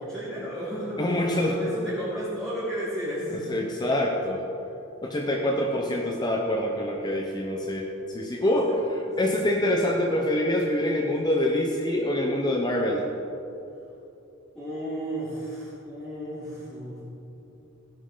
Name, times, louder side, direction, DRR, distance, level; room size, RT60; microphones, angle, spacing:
voice 1, 0.0-3.6 8.9-9.1 14.5-17.0, equal, 5° left, -14 dB, 3.2 m, -33 dB
voice 2, 1.0-1.6 3.5-4.5 5.0-13.1, left 1 dB, 20° left, 1 dB, 0.8 m, -25 dB
15.5 x 10.5 x 3.9 m, 2.8 s
head